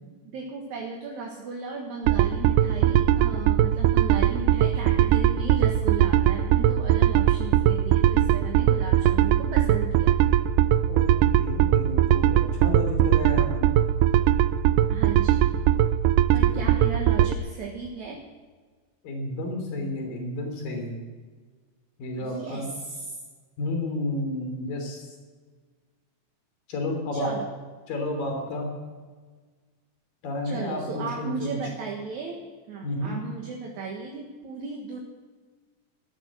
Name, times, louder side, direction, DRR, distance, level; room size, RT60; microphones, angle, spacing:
voice 1, 0.3-10.4 14.9-15.5 16.3-18.2 22.2-23.2 27.1-27.5 30.4-32.4 32.7-35.0, right 4 dB, 65° right, 0 dB, 2.9 m, -36 dB
sound 1, 2.1-17.3, right 12 dB, 80° right, 2.1 m, -21 dB
voice 2, 10.9-13.7 16.5-16.6 19.0-21.0 22.0-22.7 23.6-25.1 26.7-27.3 27.9-28.7 30.2-31.6 32.8-33.2, left 1 dB, 90° left, 3 dB, 4.9 m, -31 dB
16.0 x 13.5 x 6.4 m, 1.5 s
omnidirectional pair, 3.9 m